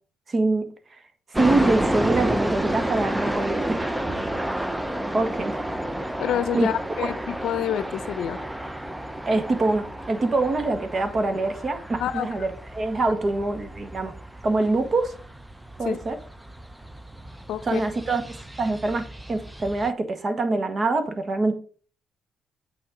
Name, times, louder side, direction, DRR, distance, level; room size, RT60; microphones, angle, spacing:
voice 1, 0.3-1.0 1.3-3.8 5.1-5.6 6.5-6.7 9.3-14.1 14.4-15.1 15.8-16.2 17.6-18.2 18.6-21.5, right 2 dB, 40° right, 8 dB, 1.6 m, -24 dB
sound 1, 1.3-19.9, right 1 dB, 10° right, 0.6 m, -31 dB
voice 2, 6.2-8.4 12.0-12.3 15.9-16.0 17.5-17.8, left 10 dB, 75° left, 15 dB, 0.6 m, -27 dB
8.7 x 6.5 x 3.8 m, 0.41 s
cardioid pair, 90°, 0 cm